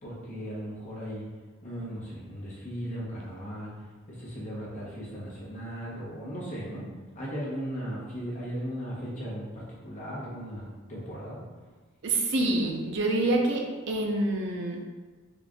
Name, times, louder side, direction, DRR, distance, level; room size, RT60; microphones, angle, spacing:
voice 1, 0.0-1.3 1.6-3.7 4.1-6.8 7.1-11.4, equal, 35° left, -7 dB, 1.0 m, -37 dB
voice 2, 12.0-14.8, right 2 dB, 55° right, 0 dB, 0.4 m, -27 dB
3.7 x 2.5 x 3.5 m, 1.3 s
head